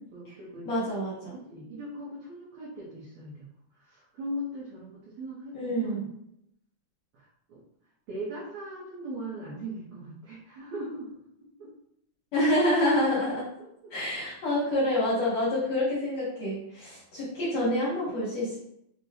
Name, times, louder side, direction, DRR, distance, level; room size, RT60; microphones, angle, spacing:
voice 1, 0.1-0.7 1.5-3.5 3.7-6.1 7.1-7.6 8.1-11.1 11.6-11.7 13.8-13.9, right 1 dB, 75° right, -7 dB, 1.7 m, -39 dB
voice 2, 0.6-1.3 5.5-6.1 12.3-13.5 13.9-18.6, left 1 dB, 75° left, -8 dB, 1.5 m, -27 dB
6.1 x 2.2 x 2.7 m, 0.76 s
omnidirectional pair, 4.4 m